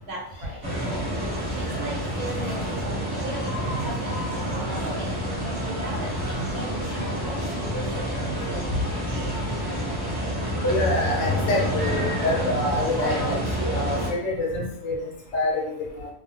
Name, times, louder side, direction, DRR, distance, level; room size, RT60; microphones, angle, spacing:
voice 1, 0.0-0.8 1.5-3.0 3.2-5.1 5.6-6.1 6.5-7.4 8.4-9.4, right 1 dB, 55° right, -2 dB, 1.0 m, -38 dB
sound 1, 0.6-14.1, equal, 20° right, 0.8 m, -28 dB
voice 2, 10.7-13.4 13.7-16.1, left 2 dB, 80° left, -2 dB, 1.2 m, -27 dB
2.7 x 2.1 x 3.3 m, 0.70 s
omnidirectional pair, 1.3 m